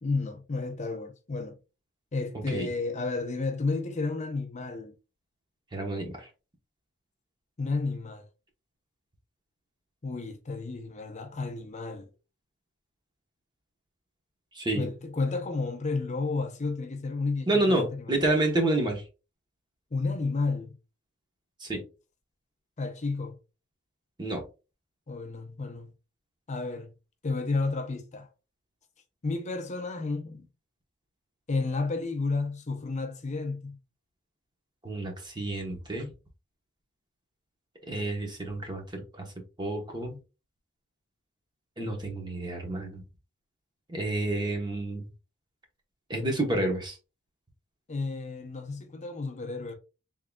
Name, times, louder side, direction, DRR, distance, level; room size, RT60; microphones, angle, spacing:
voice 1, 0.0-1.6 2.1-4.9 7.6-8.3 10.0-12.1 14.7-18.1 19.9-20.8 22.8-23.3 25.1-25.9 26.5-26.9 27.2-28.3 29.2-30.5 31.5-33.8 47.9-49.7, left 3 dB, 35° left, 0.6 m, -31 dB
voice 2, 5.7-6.3 14.5-14.9 17.5-19.0 21.6-21.8 24.2-24.4 34.8-36.1 37.9-39.3 39.6-40.2 41.8-43.0 43.9-45.1 46.1-47.0, right 2 dB, 20° right, 1.0 m, -29 dB
3.7 x 3.6 x 2.3 m
head